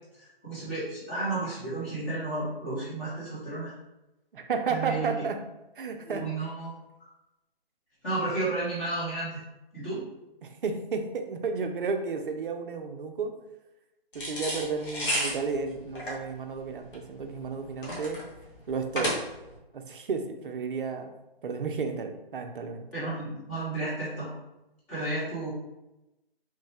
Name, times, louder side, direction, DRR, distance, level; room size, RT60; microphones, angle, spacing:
voice 1, 0.2-3.7 4.7-5.2 6.0-6.7 8.0-9.4 9.7-10.0 22.9-24.3 24.9-25.5, right 2 dB, 10° left, -10 dB, 0.8 m, -32 dB
voice 2, 4.3-5.4 5.8-6.2 10.4-13.3 14.1-18.2 18.7-19.2 19.7-21.1 21.4-22.8, right 5 dB, 60° right, 5 dB, 0.5 m, -32 dB
sound 1, 14.1-19.6, equal, 55° left, 1.0 m, -33 dB
3.1 x 2.1 x 3.2 m, 0.95 s
figure-of-eight pair, 155°, 31 cm